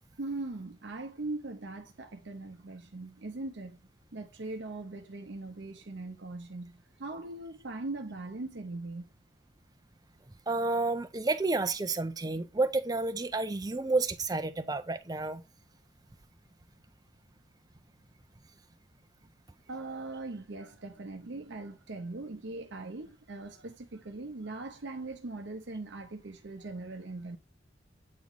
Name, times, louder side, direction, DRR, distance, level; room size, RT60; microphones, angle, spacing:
voice 1, 0.2-3.8 4.1-9.1 19.7-27.4, right 2 dB, 65° right, 0.7 m, -40 dB
voice 2, 10.5-15.4, right 3 dB, 20° right, 0.5 m, -30 dB
8.4 x 3.1 x 3.7 m
head